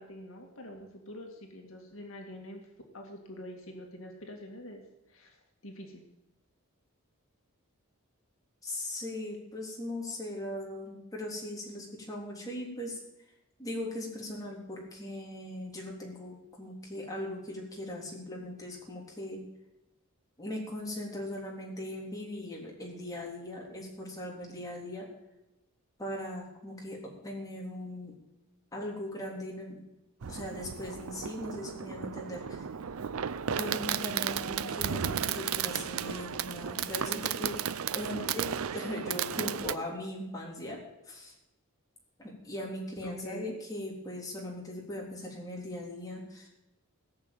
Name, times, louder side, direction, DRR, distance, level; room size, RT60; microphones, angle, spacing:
voice 1, 0.0-2.7 2.9-4.8 5.1-5.4 5.6-6.0 43.0-43.5, left 1 dB, 65° left, 1 dB, 2.1 m, -45 dB
voice 2, 8.6-13.0 13.6-19.4 20.4-25.1 26.0-28.1 28.7-29.9 30.3-32.7 33.4-37.6 37.9-40.8 41.1-41.3 42.2-46.5, left 1 dB, 15° left, -2 dB, 3.5 m, -39 dB
Fireworks, 30.2-39.8, right 8 dB, 75° right, 0.5 m, -34 dB
17.5 x 6.5 x 9.0 m, 0.91 s
head